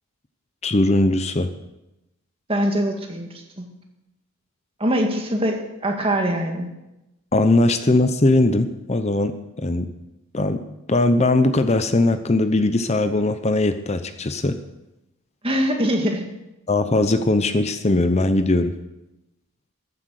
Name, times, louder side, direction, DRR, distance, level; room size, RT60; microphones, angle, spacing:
voice 1, 0.6-1.5 7.3-9.9 10.3-10.6 10.9-14.6 16.7-18.7, left 2 dB, 30° left, 10 dB, 0.7 m, -20 dB
voice 2, 2.5-3.7 4.8-6.7 15.4-16.3, equal, 25° right, 2 dB, 1.9 m, -23 dB
14.0 x 9.7 x 6.5 m, 0.95 s
head